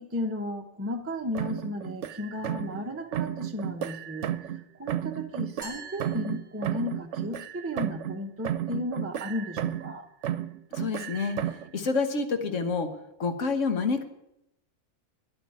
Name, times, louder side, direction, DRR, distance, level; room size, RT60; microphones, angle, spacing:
voice 1, 0.0-4.3 4.8-10.1, left 1 dB, 10° right, 2 dB, 0.9 m, -34 dB
sound 1, 1.3-2.8 3.1-4.6 4.9-8.2 8.4-10.0 10.2-11.7, right 11 dB, 75° right, 1.0 m, -33 dB
Glass, 5.6-7.1, left 3 dB, 15° left, 2.5 m, -49 dB
voice 2, 10.7-12.9 13.2-14.0, left 4 dB, 90° left, 8 dB, 1.6 m, -28 dB
10.5 x 8.4 x 9.3 m, 0.83 s
omnidirectional pair, 1.2 m